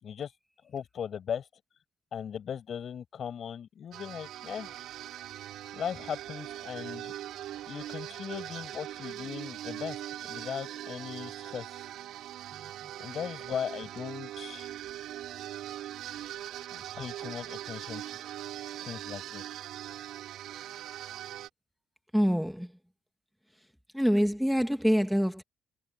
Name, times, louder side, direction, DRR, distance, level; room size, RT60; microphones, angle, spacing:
voice 1, 0.6-1.5 2.1-4.7 5.7-7.1 7.7-10.0 10.3-11.6 13.0-14.7 16.7-18.2 18.8-19.4, left 8 dB, 60° left, 6.3 m, -38 dB
sound 1, 3.9-21.5, right 12 dB, 85° right, 7.4 m, -41 dB
voice 2, 22.1-22.7 23.9-25.4, equal, ahead, 2.2 m, -25 dB
cardioid pair, 90°, 0 cm